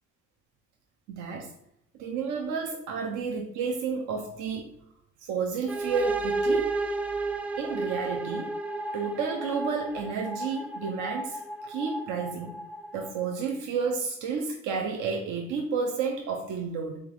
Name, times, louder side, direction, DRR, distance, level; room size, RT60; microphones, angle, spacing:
voice 1, 1.1-1.5 2.0-4.7 5.2-6.8 7.6-8.5 8.9-12.5 12.9-17.0, right 5 dB, 80° right, 2 dB, 0.6 m, -31 dB
sound 1, 5.7-13.3, right 3 dB, 5° right, 0.3 m, -32 dB
3.7 x 3.4 x 3.0 m, 0.75 s
cardioid pair, 90°, 30 cm